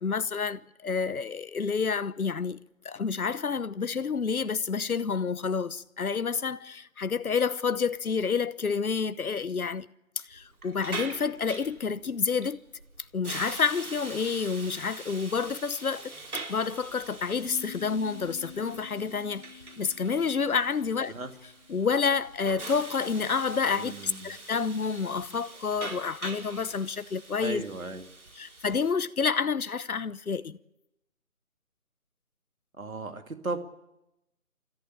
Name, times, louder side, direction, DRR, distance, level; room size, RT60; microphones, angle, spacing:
voice 1, 0.0-9.9 10.2-12.6 13.1-16.1 16.5-21.1 21.7-27.6 28.4-30.6, left 5 dB, 85° left, 1.0 m, -29 dB
Hiss, 10.3-28.9, right 2 dB, 90° right, 4.3 m, -43 dB
sound 1, 17.4-22.6, left 8 dB, 5° left, 2.0 m, -49 dB
voice 2, 23.7-24.4 27.4-28.1 32.8-33.6, right 3 dB, 70° right, 2.6 m, -36 dB
28.5 x 14.0 x 8.6 m
figure-of-eight pair, 175°, 42 cm